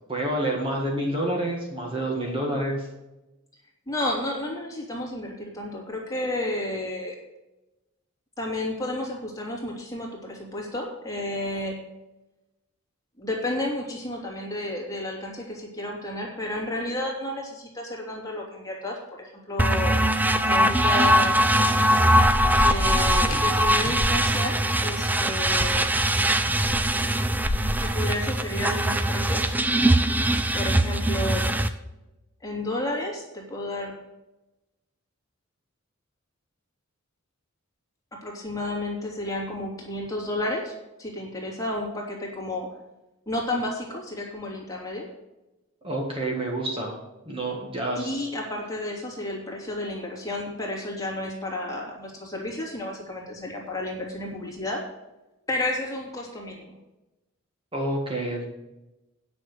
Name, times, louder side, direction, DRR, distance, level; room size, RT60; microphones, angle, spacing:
voice 1, 0.1-2.9 45.8-47.0 47.3-48.1 57.7-58.5, right 1 dB, 25° right, -1 dB, 1.9 m, -28 dB
voice 2, 3.9-7.2 8.4-11.8 13.2-19.0 19.5-20.0 20.5-21.4 22.6-25.8 27.8-29.5 30.5-31.5 32.4-33.9 38.1-42.7 43.3-45.1 47.9-54.8 55.5-56.7, left 1 dB, 15° left, -2 dB, 2.8 m, -31 dB
sound 1, 19.6-31.7, right 1 dB, 10° right, 0.5 m, -22 dB
Thunder / Rain, 21.5-29.1, left 1 dB, 70° left, 1.3 m, -32 dB
9.8 x 6.2 x 8.0 m, 0.98 s
head